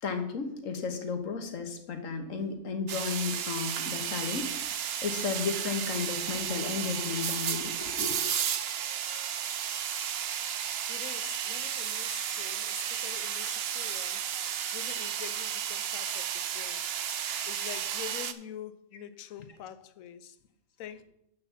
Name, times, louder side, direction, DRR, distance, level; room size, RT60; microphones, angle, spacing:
voice 1, 0.0-8.2, left 5 dB, 70° left, 1.5 m, -34 dB
sound 1, 2.9-18.3, right 9 dB, 60° right, 0.7 m, -33 dB
voice 2, 10.9-14.3 14.7-16.8 17.5-20.4 20.8-21.0, left 10 dB, 90° left, 1.1 m, -45 dB
10.5 x 4.1 x 7.1 m
omnidirectional pair, 1.4 m